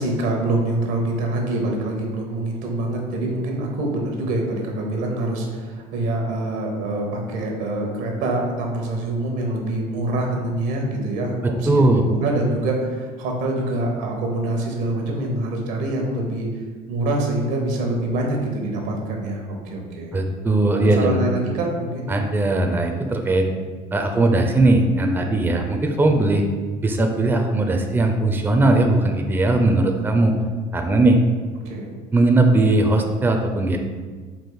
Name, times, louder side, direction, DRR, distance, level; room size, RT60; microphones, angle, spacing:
voice 1, 0.0-16.5 16.9-20.1 20.7-22.1 31.6-31.9, right 2 dB, 80° right, 1 dB, 0.9 m, -25 dB
voice 2, 11.7-12.0 20.1-21.2 22.1-23.5 23.9-26.4 26.8-30.3 30.7-31.2 32.1-33.8, right 2 dB, 10° right, 4 dB, 0.5 m, -19 dB
4.3 x 2.5 x 3.9 m, 1.5 s
supercardioid pair, 85°, 17 cm